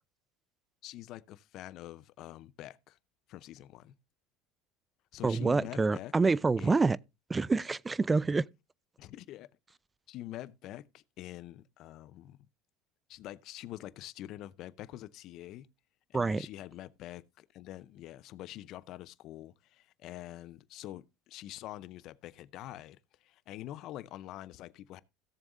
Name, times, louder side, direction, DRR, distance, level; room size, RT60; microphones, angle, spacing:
voice 1, 0.8-3.0 3.3-3.9 5.1-6.1 6.6-6.9 9.0-9.5 10.1-12.5 13.1-15.7 16.1-25.0, left 14 dB, 55° left, 0.6 m, -46 dB
voice 2, 5.2-7.0 7.3-8.4 16.1-16.4, right 3 dB, 20° right, 0.4 m, -27 dB
17.0 x 7.1 x 2.6 m
hypercardioid pair, 90°, 0 cm